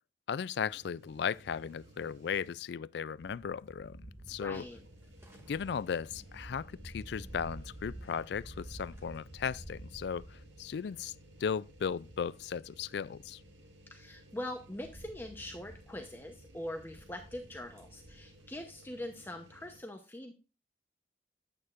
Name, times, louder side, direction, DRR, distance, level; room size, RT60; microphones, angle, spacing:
voice 1, 0.3-4.7 5.5-11.1 11.4-13.4, left 7 dB, 60° left, 0.3 m, -36 dB
sound 1, 0.7-2.8 3.2-3.3 4.5-19.8, right 1 dB, 70° right, 1.9 m, -58 dB
sound 2, 3.1-18.8, right 1 dB, 15° right, 2.1 m, -51 dB
voice 2, 4.4-4.8 13.9-20.3, left 1 dB, 10° left, 0.8 m, -43 dB
9.4 x 8.8 x 2.5 m
head